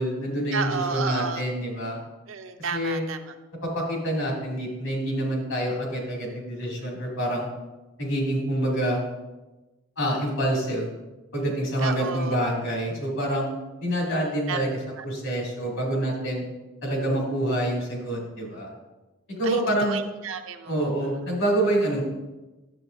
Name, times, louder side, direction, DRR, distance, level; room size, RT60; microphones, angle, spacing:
voice 1, 0.0-2.0 2.7-3.1 3.6-7.5 8.0-9.0 10.0-10.9 11.3-13.5 13.8-14.8 15.0-16.4 16.8-18.7 19.4-20.0 20.6-22.0, right 1 dB, 80° left, -2 dB, 2.6 m, -26 dB
voice 2, 0.5-1.5 2.3-3.3 11.8-12.4 14.0-14.6 15.0-15.1 19.4-21.1, right 5 dB, 75° right, 7 dB, 0.6 m, -32 dB
9.8 x 7.8 x 2.6 m, 1.1 s
head